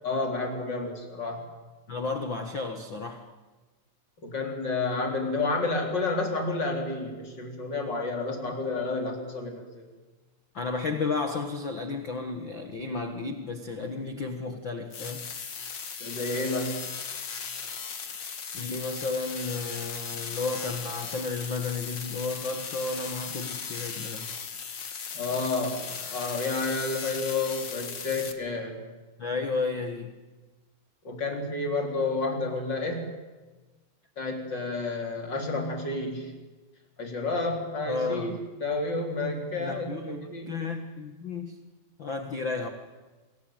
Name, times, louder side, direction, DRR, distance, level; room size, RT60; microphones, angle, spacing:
voice 1, 0.0-1.4 4.2-9.8 16.0-16.9 25.1-28.8 31.0-33.1 34.2-36.3 37.0-38.3 38.6-40.6, left 3 dB, 25° left, 2 dB, 4.3 m, -30 dB
voice 2, 1.9-3.3 10.5-15.3 18.0-18.2 18.5-24.3 29.2-30.2 37.8-38.4 39.6-41.6 42.0-42.7, left 4 dB, 85° left, 6 dB, 1.0 m, -33 dB
sound 1, 14.9-28.3, left 6 dB, 50° left, 1.3 m, -37 dB
28.5 x 22.0 x 9.1 m, 1.3 s
omnidirectional pair, 4.9 m